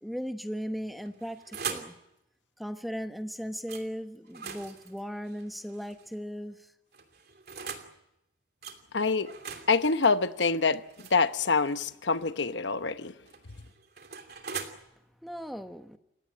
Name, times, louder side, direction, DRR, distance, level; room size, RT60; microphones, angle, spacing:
voice 1, 0.0-1.9 2.6-6.7 15.2-16.0, equal, ahead, 1.1 m, -37 dB
sound 1, 1.0-2.0 3.7-3.9 4.2-6.1 6.9-7.9 8.6-8.8 9.2-11.9 13.1-14.7, right 6 dB, 55° right, 2.8 m, -41 dB
voice 2, 8.9-9.3 9.7-10.8 11.1-13.1, left 4 dB, 70° left, 1.0 m, -25 dB
29.0 x 17.0 x 9.0 m
head